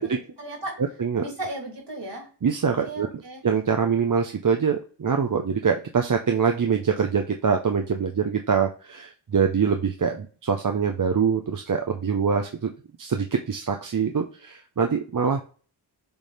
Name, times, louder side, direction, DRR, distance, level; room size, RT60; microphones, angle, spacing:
voice 1, 0.0-0.8 1.1-2.3 2.8-3.4, right 1 dB, 60° right, 1 dB, 3.2 m, -36 dB
voice 2, 2.4-3.1 3.4-12.7 13.0-15.4, right 6 dB, 40° right, 4 dB, 0.8 m, -24 dB
7.0 x 3.2 x 4.2 m, 0.38 s
cardioid pair, 45°, 47 cm